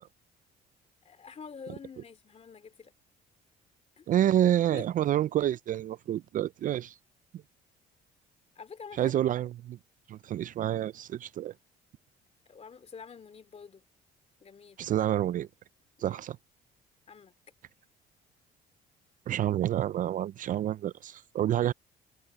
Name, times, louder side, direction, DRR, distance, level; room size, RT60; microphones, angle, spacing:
voice 1, 1.0-2.9 4.0-4.1 4.6-4.9 8.5-9.1 12.5-13.8 14.4-14.8 16.1-16.2 17.1-17.3 21.5-21.7, left 6 dB, 35° left, 2.6 m, -47 dB
voice 2, 4.1-7.0 9.0-9.8 10.1-11.5 14.8-15.5 16.0-16.4 19.3-21.7, right 12 dB, 50° right, 0.4 m, -28 dB
cardioid pair, 95°, 18 cm